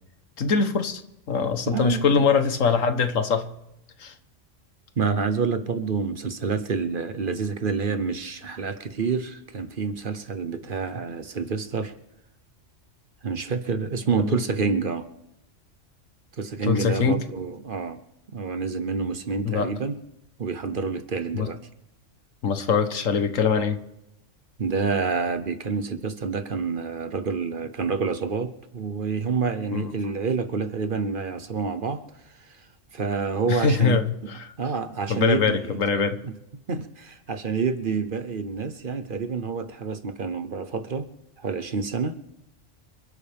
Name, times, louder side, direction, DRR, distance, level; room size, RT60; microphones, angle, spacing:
voice 1, 0.4-1.0 1.3-3.5 4.0-4.1 14.1-14.4 16.6-17.2 19.4-19.7 21.3-21.5 22.4-23.8 29.7-29.9 33.5-34.0 34.3-34.5 35.1-36.2, left 5 dB, 90° left, 1.5 m, -23 dB
voice 2, 1.7-2.2 5.0-11.9 13.2-15.1 16.4-18.0 18.3-20.0 20.4-21.6 24.6-32.0 32.5-32.6 32.9-34.0 34.2-35.8 36.2-36.3 36.7-41.1 41.4-42.2, right 5 dB, 45° right, 1.0 m, -28 dB
27.5 x 11.5 x 3.5 m
omnidirectional pair, 1.3 m